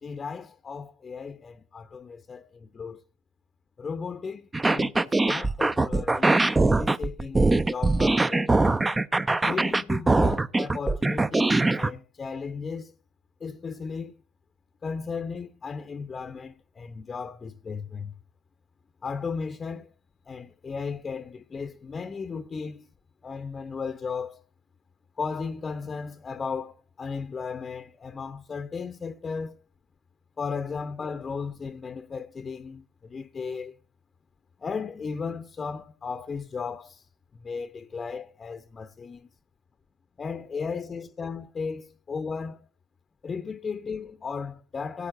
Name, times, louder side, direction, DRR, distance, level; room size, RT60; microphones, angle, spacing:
voice 1, 0.0-3.0 3.8-8.5 9.4-12.9 13.4-14.1 14.8-18.1 19.0-19.9 20.3-22.9 23.2-24.4 25.2-29.6 30.4-33.7 34.6-37.0 37.3-39.3 40.2-42.7 43.2-45.1, left 5 dB, 25° left, 0.8 m, -35 dB
sound 1, 4.5-11.9, right 2 dB, 15° right, 0.6 m, -22 dB
17.0 x 8.5 x 2.6 m
hypercardioid pair, 80°, 0 cm